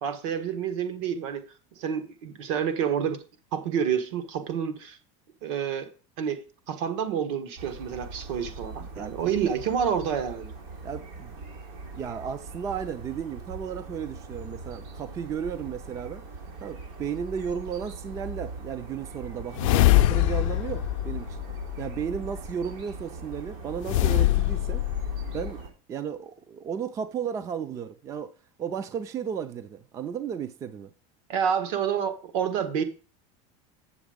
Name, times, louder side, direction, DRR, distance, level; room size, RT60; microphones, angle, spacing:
voice 1, 0.0-1.4 1.8-3.2 3.5-5.0 5.4-5.9 6.2-6.4 6.7-10.5 31.3-32.8, right 8 dB, 65° right, 1.4 m, -28 dB
sound 1, 7.6-25.7, right 3 dB, 85° right, 3.4 m, -41 dB
voice 2, 8.8-9.1 10.8-11.3 11.9-16.2 16.6-21.4 21.8-24.8 25.3-25.6 25.9-28.3 28.6-30.9, right 7 dB, 20° right, 0.4 m, -34 dB
sound 2, 19.5-22.0 23.8-25.5, left 16 dB, 90° left, 0.5 m, -24 dB
7.8 x 7.2 x 5.0 m
supercardioid pair, 170°, 17 cm